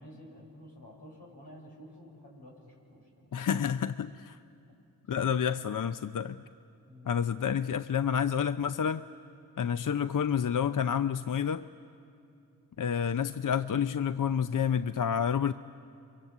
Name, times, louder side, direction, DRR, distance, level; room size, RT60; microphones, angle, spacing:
voice 1, 0.0-3.6 6.9-7.1, equal, 85° left, -1 dB, 6.9 m, -51 dB
voice 2, 3.3-4.4 5.1-6.4 7.1-9.0 9.6-11.6 12.8-15.5, left 8 dB, 55° left, 12 dB, 0.7 m, -29 dB
29.0 x 23.5 x 8.2 m, 2.6 s
cardioid pair, 40°, 39 cm